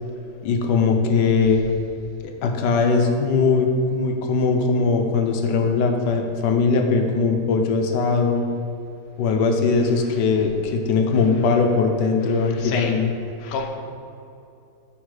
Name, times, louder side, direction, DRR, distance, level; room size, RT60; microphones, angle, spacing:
voice 1, 0.4-1.6 2.2-8.5 9.2-13.1, left 4 dB, 85° left, 3 dB, 1.3 m, -20 dB
voice 2, 12.4-12.9 13.4-13.7, left 5 dB, 70° left, 3 dB, 0.6 m, -29 dB
8.5 x 3.6 x 4.8 m, 2.6 s
omnidirectional pair, 1.8 m